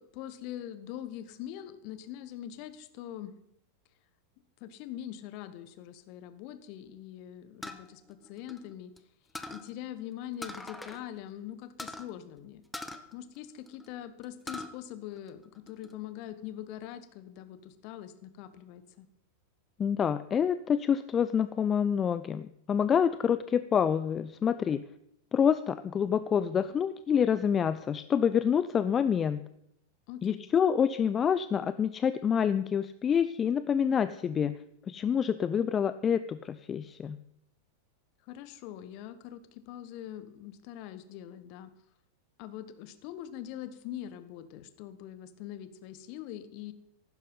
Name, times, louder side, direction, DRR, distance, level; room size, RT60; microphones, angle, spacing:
voice 1, 0.0-3.3 4.6-8.9 9.5-12.6 13.1-19.1 30.1-30.5 38.3-41.7 42.4-46.7, left 11 dB, 45° left, 12 dB, 1.3 m, -43 dB
sound 1, 7.6-9.0 9.3-9.7 10.4-11.0 11.3-11.4 11.8-12.1 12.7-13.9 14.2-14.7 15.2-15.9, left 2 dB, 5° left, 1.1 m, -42 dB
voice 2, 19.8-24.8 25.3-29.5 30.2-34.5 34.9-37.2, left 7 dB, 25° left, 14 dB, 0.5 m, -27 dB
15.0 x 12.0 x 5.7 m, 0.77 s
figure-of-eight pair, 90°, 0 cm